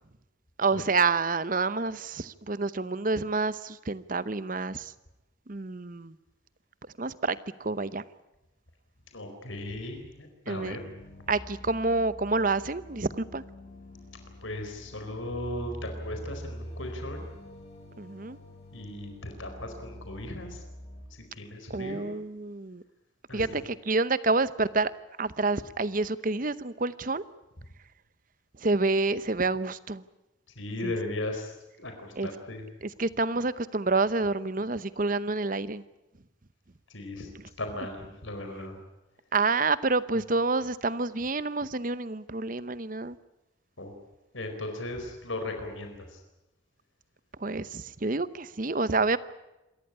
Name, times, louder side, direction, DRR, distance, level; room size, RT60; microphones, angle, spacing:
voice 1, 0.6-4.9 5.5-6.1 7.0-8.0 10.5-10.8 11.3-13.4 18.0-18.4 21.7-22.8 23.3-24.9 25.2-27.2 28.6-30.0 30.8-30.9 32.2-32.3 32.8-35.8 39.3-43.2 47.4-49.2, right 3 dB, 40° right, 16 dB, 0.8 m, -28 dB
voice 2, 9.1-10.8 14.4-17.3 18.7-20.6 21.3-22.1 23.3-23.4 30.6-31.5 31.8-32.6 36.9-37.3 37.6-38.8 43.8-43.9 44.3-46.0, left 1 dB, 80° left, 5 dB, 4.4 m, -37 dB
sound 1, 10.5-21.0, equal, 35° left, 7.8 m, -45 dB
27.0 x 14.5 x 9.9 m, 0.99 s
head